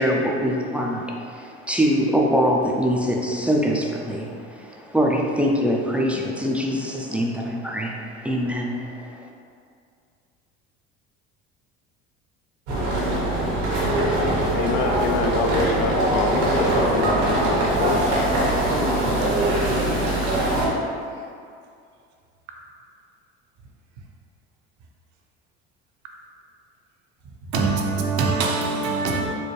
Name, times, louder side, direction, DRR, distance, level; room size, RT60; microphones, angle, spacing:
voice 1, 0.0-9.3, equal, 5° right, -1 dB, 0.3 m, -23 dB
sound 1, 12.7-20.7, right 1 dB, 85° right, 1.1 m, -22 dB
voice 2, 14.5-18.5, left 5 dB, 65° left, 3 dB, 0.5 m, -27 dB
voice 3, 19.4-19.9 27.5-29.3, right 4 dB, 60° right, 0 dB, 0.6 m, -24 dB
4.4 x 2.2 x 3.0 m, 2.3 s
hypercardioid pair, 75°, 32 cm